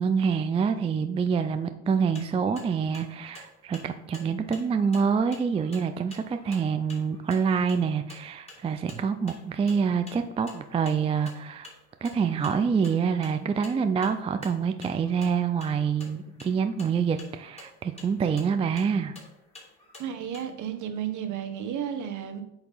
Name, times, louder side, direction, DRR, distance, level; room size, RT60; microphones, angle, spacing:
voice 1, 0.0-11.7 12.0-19.1, right 6 dB, 20° right, 8 dB, 0.3 m, -26 dB
sound 1, 1.9-20.5, left 2 dB, 15° left, 2.3 m, -50 dB
voice 2, 20.0-22.4, right 9 dB, 55° right, 8 dB, 1.1 m, -33 dB
8.1 x 2.9 x 5.4 m, 0.85 s
supercardioid pair, 95°, 36 cm